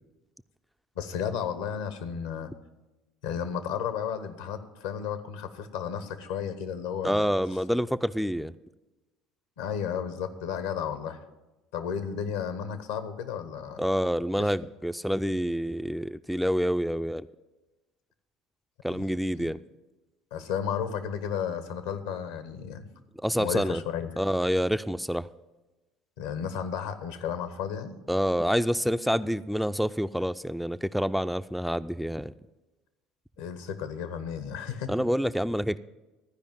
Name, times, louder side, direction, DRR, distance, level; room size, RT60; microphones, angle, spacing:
voice 1, 1.0-2.5 3.2-7.3 9.6-11.2 11.7-13.8 14.4-14.5 18.9-19.1 19.4-19.5 20.3-22.9 23.4-24.1 26.2-28.0 33.4-34.9, left 7 dB, 80° left, 11 dB, 1.0 m, -33 dB
voice 2, 7.0-8.5 13.8-17.3 18.8-19.6 23.2-23.8 24.2-25.3 28.1-32.3 34.9-35.8, equal, ahead, 12 dB, 0.3 m, -27 dB
13.5 x 5.0 x 9.1 m, 1.1 s
hypercardioid pair, 70°, 0 cm